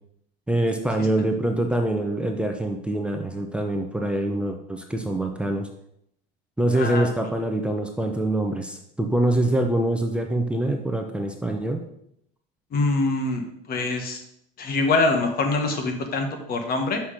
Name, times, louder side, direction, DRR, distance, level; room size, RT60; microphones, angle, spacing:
voice 1, 0.5-5.7 6.6-11.8, right 1 dB, 5° right, 3 dB, 0.8 m, -24 dB
voice 2, 6.7-7.1 12.7-14.2 14.6-17.0, left 3 dB, 50° left, 5 dB, 1.5 m, -24 dB
6.1 x 5.7 x 5.0 m, 0.74 s
supercardioid pair, 100°, 20 cm